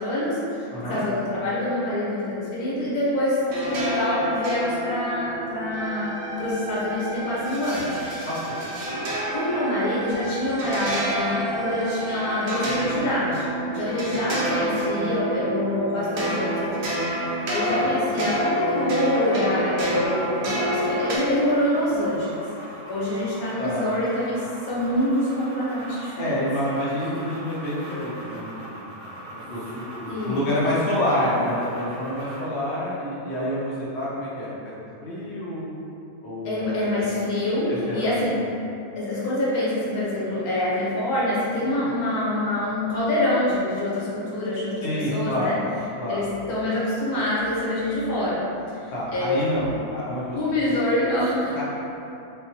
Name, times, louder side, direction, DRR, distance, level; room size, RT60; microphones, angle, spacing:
voice 1, 0.0-7.9 8.9-9.0 9.3-17.1 17.5-22.3 22.9-26.3 26.9-27.0 29.4-29.5 30.1-30.4 36.4-38.4 39.0-45.6 46.1-48.4 48.7-48.9 49.1-49.6 50.3-51.6, left 1 dB, 75° left, -8 dB, 1.2 m, -26 dB
voice 2, 0.7-1.0 8.2-8.6 17.6-17.9 23.6-23.9 26.2-35.7 36.2-36.8 37.7-38.2 44.8-45.6 46.0-46.2 48.9-50.4 50.7-50.8 51.5-51.6, left 1 dB, 55° left, -8 dB, 0.8 m, -28 dB
sound 1, 3.5-21.2, right 1 dB, 60° right, 0.8 m, -28 dB
sound 2, 5.7-12.7, right 2 dB, 80° right, 1.1 m, -36 dB
sound 3, 16.1-32.6, right 1 dB, 25° right, 1.2 m, -42 dB
3.6 x 2.2 x 2.7 m, 2.8 s
omnidirectional pair, 1.6 m